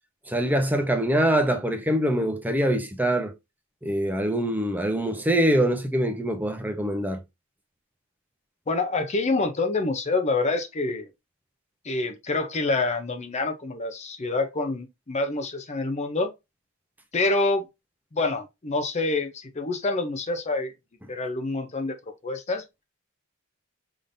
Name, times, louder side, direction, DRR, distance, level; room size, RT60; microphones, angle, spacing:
voice 1, 0.3-3.3 3.8-7.2, right 1 dB, 10° right, 0.7 m, -24 dB
voice 2, 8.7-11.1 11.8-16.3 17.1-17.7 18.1-20.7 21.1-22.0 22.2-22.6, left 3 dB, 30° left, 0.6 m, -27 dB
5.1 x 3.7 x 2.6 m
head